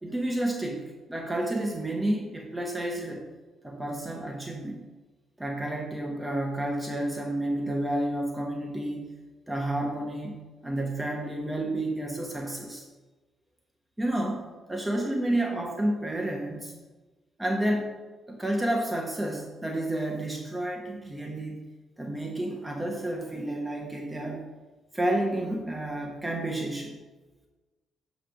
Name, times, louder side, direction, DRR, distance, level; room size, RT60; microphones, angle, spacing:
voice 1, 0.0-3.3 3.6-4.8 5.4-9.1 9.5-12.8 14.0-14.4 14.7-16.7 17.4-17.9 18.3-21.6 22.0-24.4 24.9-27.0, right 1 dB, 10° right, 0 dB, 1.0 m, -30 dB
8.7 x 3.3 x 6.2 m, 1.2 s
cardioid pair, 90°, 0 cm